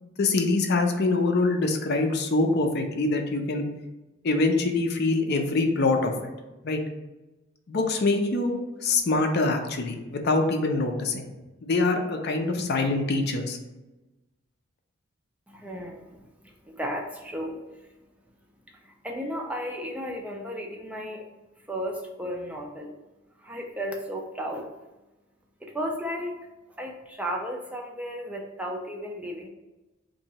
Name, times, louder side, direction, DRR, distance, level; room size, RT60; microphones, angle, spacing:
voice 1, 0.0-3.6 4.2-6.3 6.6-6.8 7.7-11.3 11.6-13.6, left 3 dB, 50° left, 4 dB, 0.5 m, -24 dB
voice 2, 15.5-21.3 21.6-23.0 23.4-24.8 25.6-26.3 26.8-29.5, equal, 5° right, 0 dB, 0.3 m, -35 dB
2.8 x 2.7 x 4.1 m, 1.1 s
head